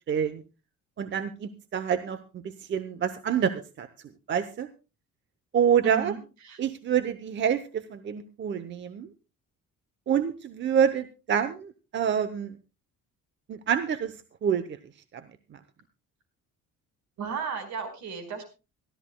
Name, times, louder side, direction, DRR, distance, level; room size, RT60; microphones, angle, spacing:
voice 1, 0.1-0.4 1.0-3.9 4.3-4.7 5.5-6.1 6.6-9.1 10.1-12.5 13.5-14.2 14.4-14.6 15.1-15.2, right 8 dB, 40° right, 12 dB, 0.8 m, -27 dB
voice 2, 5.8-6.2 6.4-6.6 17.2-18.4, right 6 dB, 70° right, 7 dB, 4.7 m, -34 dB
24.0 x 13.5 x 2.2 m, 0.31 s
cardioid pair, 150°, 30 cm